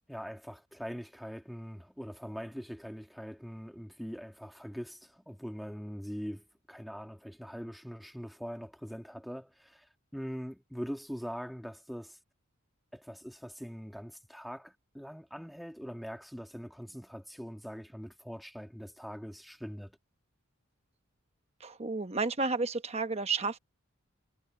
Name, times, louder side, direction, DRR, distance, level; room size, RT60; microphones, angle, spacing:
voice 1, 0.1-9.8 10.1-12.2 12.9-19.9, equal, ahead, 1.9 m, -42 dB
voice 2, 21.6-23.6, right 4 dB, 30° right, 1.0 m, -31 dB
head